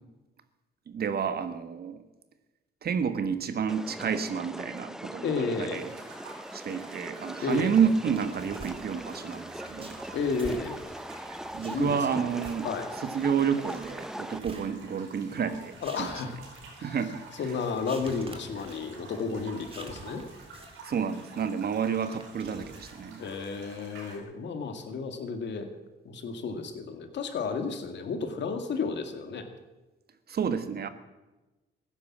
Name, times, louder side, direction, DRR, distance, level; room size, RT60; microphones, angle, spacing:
voice 1, 0.9-2.0 2.8-5.8 6.5-10.0 11.5-12.7 13.0-16.1 16.8-17.2 20.8-23.2 30.3-30.9, right 7 dB, 50° right, 11 dB, 1.4 m, -30 dB
sound 1, 3.7-14.4, right 1 dB, 5° right, 0.5 m, -41 dB
voice 2, 5.2-5.8 7.4-7.8 10.1-10.8 11.7-12.2 12.6-12.9 15.8-16.4 16.8-17.0 17.4-20.2 23.2-25.7 26.0-29.5, left 4 dB, 65° left, 6 dB, 2.2 m, -32 dB
sound 2, 5.7-24.2, right 3 dB, 90° right, 4.6 m, -49 dB
sound 3, 8.1-23.8, right 2 dB, 30° right, 2.3 m, -50 dB
15.0 x 11.0 x 7.4 m, 1.1 s
cardioid pair, 90°, 20 cm